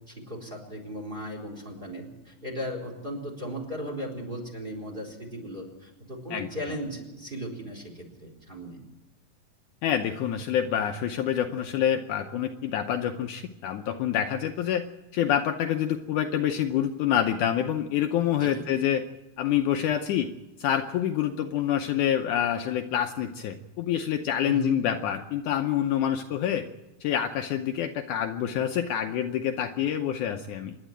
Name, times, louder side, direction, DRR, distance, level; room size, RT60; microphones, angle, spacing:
voice 1, 0.1-8.8 18.3-18.6 24.4-24.8, equal, 15° right, 3 dB, 4.0 m, -37 dB
voice 2, 9.8-14.8 15.1-19.0 19.4-20.3 20.6-26.7 27.0-30.8, left 10 dB, 75° left, 5 dB, 2.1 m, -27 dB
26.5 x 11.0 x 8.9 m, 1.0 s
omnidirectional pair, 3.9 m